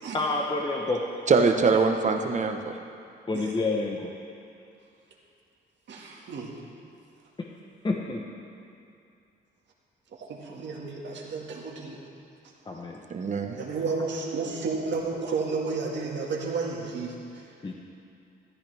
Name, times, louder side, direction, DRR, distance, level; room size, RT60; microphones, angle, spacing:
voice 1, 0.1-1.0 3.3-4.1 7.4-7.5 7.8-8.3 12.7-13.0 17.6-17.7, left 3 dB, 25° left, 0 dB, 1.1 m, -28 dB
voice 2, 1.3-2.8 13.1-13.5, right 4 dB, 35° right, 5 dB, 1.1 m, -23 dB
voice 3, 5.9-6.6 10.2-12.0 13.5-17.5, right 4 dB, 65° right, -2 dB, 2.0 m, -32 dB
14.5 x 14.0 x 3.5 m, 2.5 s
cardioid pair, 90°, 20 cm